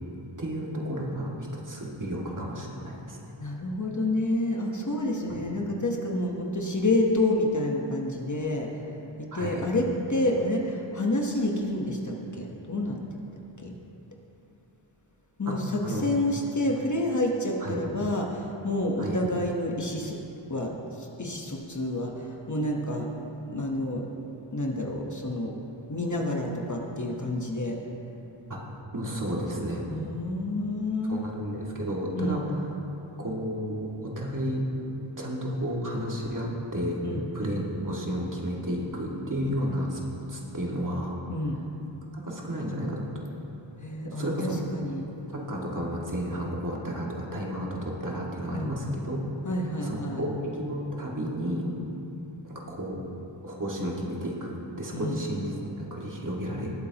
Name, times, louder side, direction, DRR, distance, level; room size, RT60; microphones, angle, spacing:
voice 1, 0.4-3.2 5.3-5.5 9.3-9.7 15.5-16.0 17.6-17.9 19.0-19.2 28.5-29.8 31.0-32.6 33.2-34.7 35.2-37.0 37.3-40.0 40.3-41.2 42.2-43.1 44.1-44.6 45.3-49.2 49.8-51.7 52.4-53.0 53.4-56.7, equal, 40° right, -3 dB, 1.9 m, -32 dB
voice 2, 3.4-8.7 9.2-13.0 13.6-13.8 15.4-20.2 20.5-23.1 23.5-24.0 24.5-25.5 25.9-27.8 29.9-31.2 32.1-32.4 37.0-37.2 41.3-41.6 43.8-45.1 48.5-48.7 49.4-50.2 54.9-55.2, left 1 dB, 40° left, 0 dB, 1.1 m, -29 dB
19.0 x 8.4 x 2.9 m, 2.9 s
wide cardioid pair, 95°, 48 cm